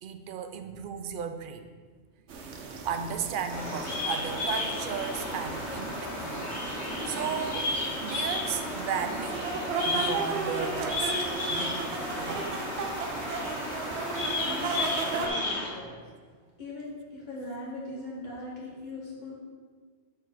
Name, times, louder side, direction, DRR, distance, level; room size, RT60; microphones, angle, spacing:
voice 1, 0.0-1.7 2.8-6.5 7.0-7.7 8.0-9.5 9.8-12.5, right 7 dB, 60° right, 7 dB, 0.6 m, -35 dB
sound 1, 2.3-15.3, right 4 dB, 80° right, 1.0 m, -35 dB
Bird vocalization bird call bird song, 3.5-15.7, left 2 dB, 85° left, 1.6 m, -33 dB
voice 2, 14.4-16.0 16.6-19.4, left 1 dB, 40° left, -6 dB, 1.8 m, -40 dB
7.1 x 3.7 x 4.5 m, 1.5 s
omnidirectional pair, 1.1 m